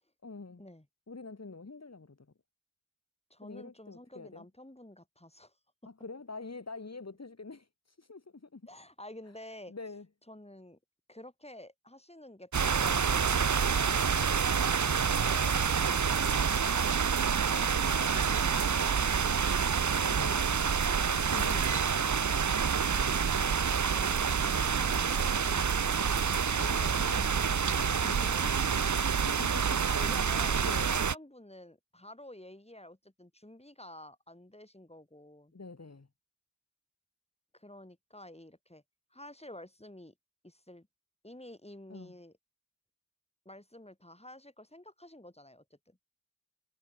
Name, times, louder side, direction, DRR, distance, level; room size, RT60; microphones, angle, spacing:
voice 1, 0.2-0.6 1.1-2.2 3.4-4.4 5.9-8.6 9.7-10.1 13.1-13.3 20.1-23.0 23.3-24.0 24.4-24.6 26.6-27.3 27.7-28.2 29.1-29.8 30.6-30.9 35.5-36.1 41.9-42.1, left 3 dB, 60° left, 2.2 m, -46 dB
voice 2, 3.3-5.6 8.7-9.7 10.3-10.8 11.1-13.1 17.5-19.6 20.0-20.6 23.7-26.4 26.9-29.0 29.7-30.6 30.9-35.5 37.5-38.8 39.1-40.1 40.4-40.9 41.2-42.4 43.5-46.1, left 1 dB, 20° left, 7.0 m, -51 dB
sound 1, 12.5-31.1, right 6 dB, 70° right, 0.8 m, -28 dB
wide cardioid pair, 50°, 30 cm